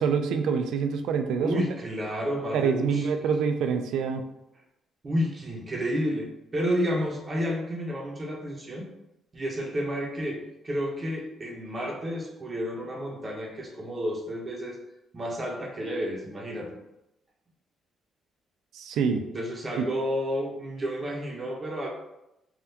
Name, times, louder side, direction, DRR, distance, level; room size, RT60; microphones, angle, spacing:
voice 1, 0.0-1.5 2.5-4.2 18.7-19.2 19.8-19.9, right 6 dB, 80° right, 7 dB, 0.3 m, -26 dB
voice 2, 1.4-3.1 5.0-8.9 9.3-14.8 15.1-16.8 19.3-21.9, equal, 30° right, -1 dB, 0.7 m, -31 dB
3.5 x 2.3 x 2.7 m, 0.87 s
cardioid pair, 90°, 0 cm